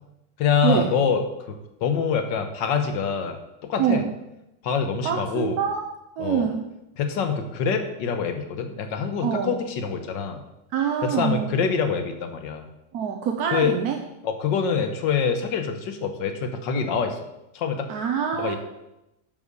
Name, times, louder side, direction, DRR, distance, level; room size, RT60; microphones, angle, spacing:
voice 1, 0.4-3.4 3.6-4.0 4.6-5.6 6.2-6.5 7.0-10.4 11.0-12.7 13.5-13.7 14.2-17.2 17.5-17.9 18.4-18.6, left 6 dB, 65° left, 7 dB, 1.7 m, -25 dB
voice 2, 3.8-4.1 5.0-5.9 6.2-6.7 9.2-9.5 10.7-11.5 12.9-14.0 17.9-18.6, right 8 dB, 60° right, 3 dB, 1.1 m, -25 dB
9.9 x 5.7 x 6.7 m, 0.90 s
omnidirectional pair, 2.2 m